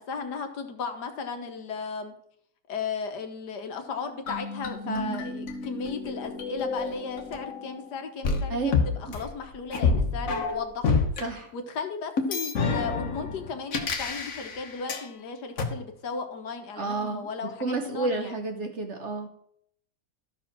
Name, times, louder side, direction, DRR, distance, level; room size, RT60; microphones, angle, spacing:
voice 1, 0.0-2.1 2.7-11.0 11.5-18.4, left 5 dB, 70° left, 6 dB, 1.6 m, -35 dB
sound 1, 4.3-7.8 8.2-11.2 12.2-15.1 15.6-15.7, left 4 dB, 55° left, 1.4 m, -29 dB
voice 2, 4.8-5.2 8.5-8.7 11.2-11.5 16.8-19.3, right 3 dB, 45° right, 4 dB, 1.2 m, -31 dB
13.0 x 5.0 x 5.9 m, 0.69 s
omnidirectional pair, 1.9 m